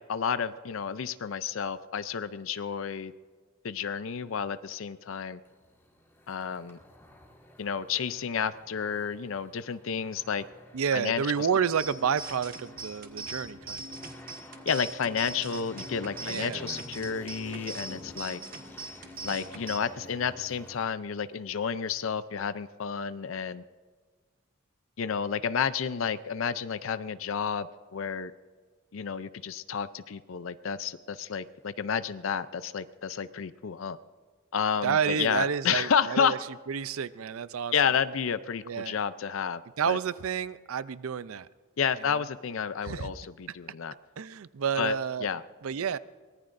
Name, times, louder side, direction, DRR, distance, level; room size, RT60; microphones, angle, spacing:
voice 1, 0.1-3.1 3.6-5.4 6.3-6.8 7.6-10.4 10.9-11.5 14.7-18.4 19.2-23.6 25.0-28.3 28.9-34.0 34.5-36.3 37.7-40.0 41.8-43.9 44.8-45.4, left 7 dB, 70° left, 0.5 m, -31 dB
sound 1, 5.4-20.8, equal, 10° left, 2.0 m, -50 dB
voice 2, 10.7-14.0 16.2-16.8 34.8-36.4 36.7-37.7 38.6-39.0 39.8-41.5 42.1-42.2 42.8-43.1 44.2-45.3 45.6-46.0, right 7 dB, 85° right, 0.5 m, -30 dB
sound 2, 11.8-19.8, right 3 dB, 45° right, 1.5 m, -41 dB
23.5 x 19.0 x 2.6 m
head